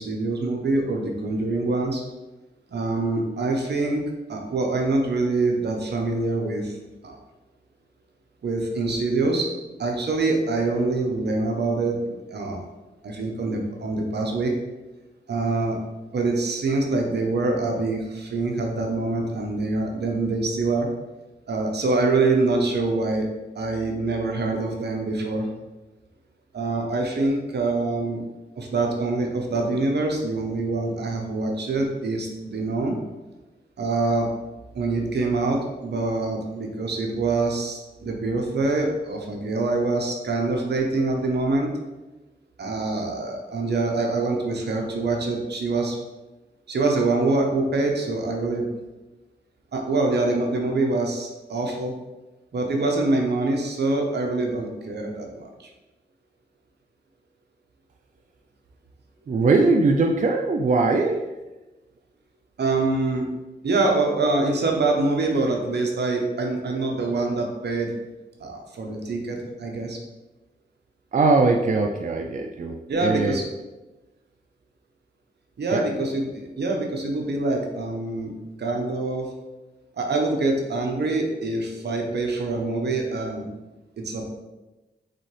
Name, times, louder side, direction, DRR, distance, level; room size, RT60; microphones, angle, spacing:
voice 1, 0.0-2.0 2.7-4.0 4.3-6.8 7.0-7.1 8.4-9.5 9.8-12.6 13.0-14.5 15.3-15.8 16.1-20.9 21.5-23.3 23.5-25.5 26.5-28.2 28.6-32.9 33.8-34.3 34.7-41.7 42.6-46.0 46.7-48.7 49.7-51.9 52.5-55.7 62.6-63.3 63.6-67.9 68.4-70.0 72.9-73.4 75.6-78.3 78.6-79.3 80.0-83.5 84.0-84.2, right 3 dB, 75° right, 2 dB, 0.8 m, -25 dB
voice 2, 59.3-61.3 71.1-73.4 75.7-75.9, right 3 dB, 45° right, 2 dB, 0.4 m, -21 dB
4.0 x 3.7 x 3.3 m, 1.1 s
cardioid pair, 45°, 18 cm